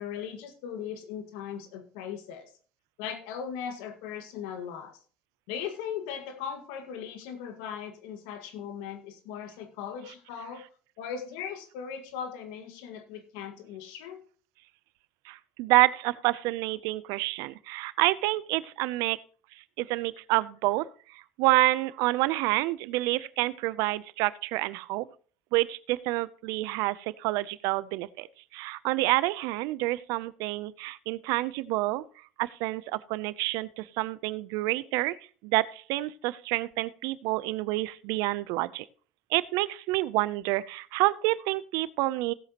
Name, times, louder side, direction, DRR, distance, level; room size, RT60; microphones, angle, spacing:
voice 1, 0.0-2.5 3.0-5.0 5.5-10.6 11.0-14.2, left 8 dB, 85° left, 8 dB, 1.9 m, -38 dB
voice 2, 15.3-19.2 19.8-25.1 25.5-28.3 28.5-32.0 32.4-35.1 35.4-38.8 39.3-42.3, right 19 dB, 75° right, 18 dB, 0.6 m, -28 dB
17.0 x 8.0 x 3.0 m, 0.40 s
supercardioid pair, 100°, 5 cm